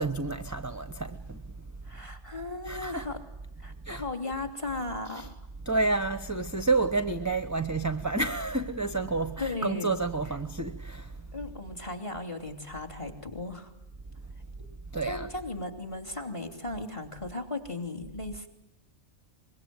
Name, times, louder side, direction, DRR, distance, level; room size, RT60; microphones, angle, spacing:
voice 1, 0.0-1.7 2.6-3.1 3.8-4.1 5.1-5.3 5.6-11.3 14.9-15.3, right 3 dB, 15° right, 1.0 m, -30 dB
voice 2, 1.8-3.2 3.6-5.4 9.4-9.9 10.3-10.4 11.3-13.7 14.6-14.7 15.0-18.5, left 2 dB, 25° left, 3.2 m, -36 dB
24.5 x 22.5 x 9.5 m
omnidirectional pair, 1.2 m